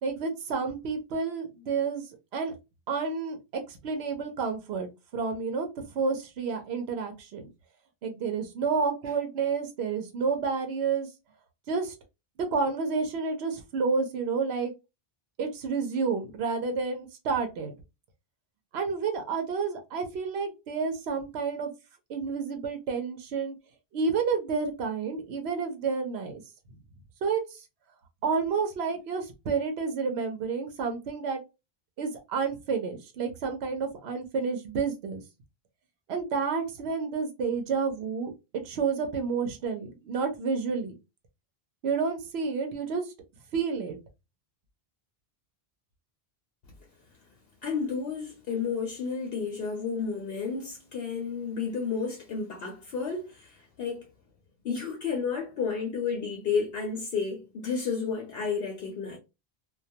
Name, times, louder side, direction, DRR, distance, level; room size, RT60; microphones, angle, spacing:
voice 1, 0.0-2.0 2.3-2.5 2.9-5.7 6.0-7.5 8.0-11.1 11.7-11.9 12.4-14.7 15.4-17.7 18.7-21.7 22.1-23.5 23.9-26.4 27.2-27.4 28.2-31.4 32.0-35.2 36.1-38.3 38.6-40.9 41.8-43.0 43.5-44.0, right 5 dB, 80° right, 0.9 m, -30 dB
voice 2, 47.6-54.1 54.6-59.2, left 5 dB, 70° left, 0.8 m, -31 dB
2.2 x 2.2 x 2.6 m
omnidirectional pair, 1.1 m